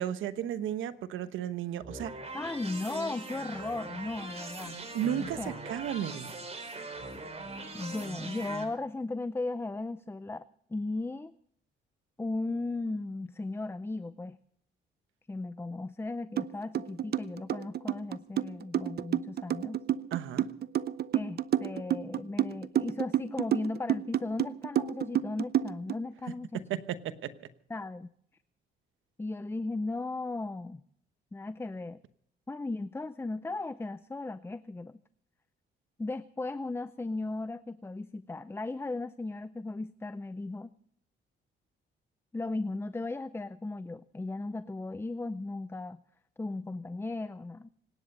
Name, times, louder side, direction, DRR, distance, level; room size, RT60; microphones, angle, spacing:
voice 1, 0.0-2.2 4.9-6.3 20.1-20.5 26.7-27.3, right 10 dB, 80° right, 12 dB, 1.2 m, -34 dB
sound 1, 1.8-8.6, right 2 dB, 30° right, 4.0 m, -41 dB
voice 2, 2.3-4.8 5.2-5.6 7.7-10.4 10.7-11.3 12.2-14.4 15.3-19.8 21.1-26.6 27.7-28.1 29.2-30.8 31.3-32.0 32.5-34.9 36.0-40.7 42.3-46.0 46.4-47.7, left 2 dB, 10° left, 15 dB, 0.5 m, -36 dB
sound 2, 16.4-16.5 16.7-26.0, right 11 dB, 55° right, 0.6 m, -29 dB
25.5 x 10.0 x 5.4 m, 0.65 s
cardioid pair, 90°, 20 cm